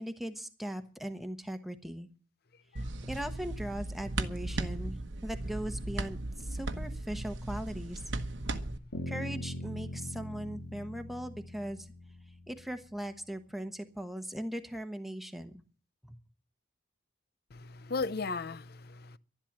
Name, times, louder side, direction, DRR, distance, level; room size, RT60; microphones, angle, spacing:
voice 1, 0.0-2.1 3.1-5.0 5.2-8.0 9.1-11.9 12.5-15.6 16.0-16.2, right 1 dB, ahead, 1.1 m, -39 dB
sound 1, 2.8-8.8, right 2 dB, 65° right, 1.1 m, -37 dB
sound 2, 8.9-12.9, left 1 dB, 85° left, 2.8 m, -41 dB
voice 2, 17.5-19.2, left 4 dB, 50° left, 0.6 m, -36 dB
12.0 x 11.5 x 7.3 m
head